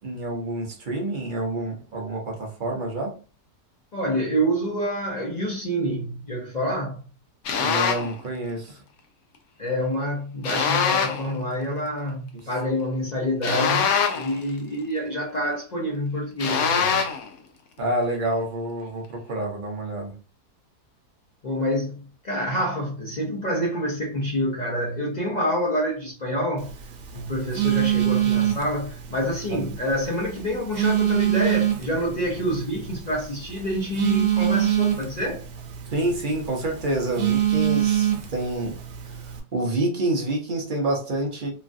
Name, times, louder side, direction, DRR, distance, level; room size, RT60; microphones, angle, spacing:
voice 1, 0.0-3.1 7.6-8.8 17.8-20.1 29.5-29.6 35.9-38.8 39.0-39.2 39.5-41.5, right 1 dB, 45° right, 0.6 m, -28 dB
voice 2, 3.9-7.0 9.6-17.0 21.4-26.7 27.1-35.4, equal, 50° left, 0.5 m, -27 dB
sound 1, 7.4-8.1 10.4-11.3 13.4-14.4 16.4-17.3, left 6 dB, 70° left, 1.0 m, -23 dB
Telephone, 26.6-39.4, right 11 dB, 70° right, 1.1 m, -26 dB
3.1 x 2.4 x 2.5 m
omnidirectional pair, 1.7 m